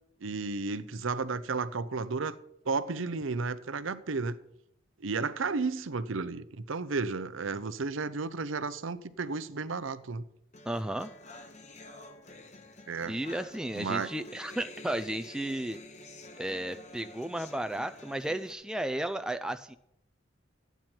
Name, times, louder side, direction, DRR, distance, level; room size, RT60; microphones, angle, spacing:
voice 1, 0.2-2.4 2.7-4.4 5.0-10.2 12.9-13.1 13.7-14.1, right 4 dB, 85° right, 0.7 m, -33 dB
sound 1, 10.5-18.5, left 2 dB, 35° left, 0.9 m, -49 dB
voice 2, 10.6-11.1 13.1-15.8 16.4-19.8, right 1 dB, 5° right, 0.4 m, -34 dB
14.0 x 9.2 x 4.4 m
head